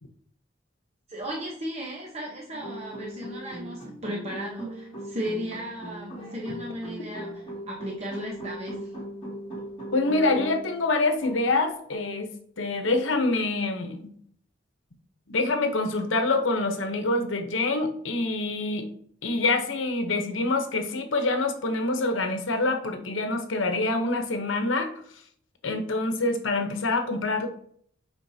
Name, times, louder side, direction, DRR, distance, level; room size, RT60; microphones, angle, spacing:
voice 1, 1.1-8.9, equal, 35° right, -2 dB, 0.9 m, -35 dB
sound 1, 2.5-10.8 11.2-11.4 11.9-12.0, right 1 dB, 30° left, 2.3 m, -39 dB
voice 2, 9.9-12.3 12.6-14.1 15.3-18.9 19.2-24.9 25.6-27.5, left 2 dB, 75° left, 6 dB, 0.9 m, -26 dB
8.0 x 5.3 x 2.8 m, 0.64 s
head